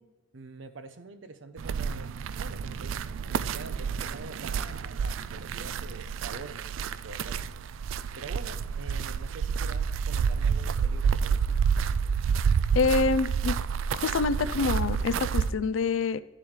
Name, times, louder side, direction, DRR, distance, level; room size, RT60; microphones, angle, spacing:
voice 1, 0.3-6.8 7.0-11.6, right 3 dB, 75° right, 10 dB, 0.7 m, -45 dB
sound 1, 1.6-15.5, right 6 dB, 90° right, 0.3 m, -29 dB
voice 2, 12.7-13.6 13.9-16.2, left 4 dB, 85° left, 15 dB, 0.4 m, -26 dB
10.5 x 7.5 x 3.2 m, 1.1 s
head